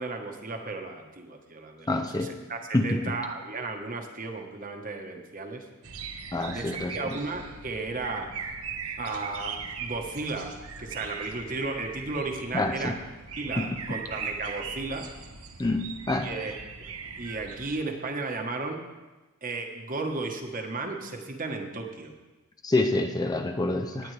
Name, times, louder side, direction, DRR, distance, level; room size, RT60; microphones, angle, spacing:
voice 1, 0.0-5.7 6.4-8.3 9.0-10.5 10.8-13.0 13.4-15.1 16.2-16.5 17.2-18.8 19.4-22.1 23.9-24.1, right 3 dB, 40° right, 4 dB, 1.3 m, -34 dB
voice 2, 1.9-2.3 2.7-3.1 6.3-7.0 12.5-12.9 13.6-13.7 15.6-16.3 22.6-24.1, left 2 dB, 20° left, 5 dB, 0.5 m, -27 dB
sound 1, 5.8-17.8, right 5 dB, 90° right, 1.0 m, -39 dB
18.5 x 9.4 x 3.3 m, 1.2 s
head